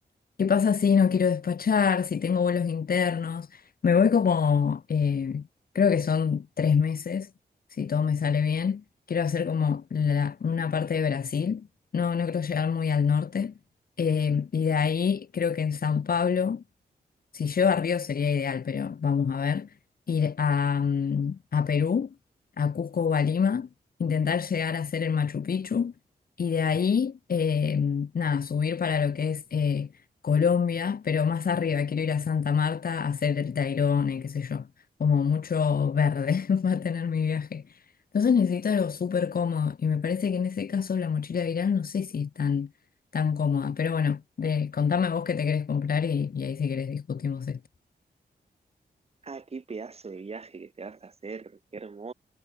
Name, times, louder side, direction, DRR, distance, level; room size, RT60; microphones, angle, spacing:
voice 1, 0.4-5.4 5.7-7.3 7.7-11.7 11.9-13.5 14.0-16.6 17.3-19.7 20.1-22.1 22.6-23.7 24.0-25.9 26.4-29.9 30.2-34.7 35.0-37.8 38.1-42.7 43.1-47.6, left 6 dB, 60° left, 4.7 m, -26 dB
voice 2, 49.2-52.1, right 4 dB, 35° right, 5.0 m, -40 dB
wide cardioid pair, 155°, 17 cm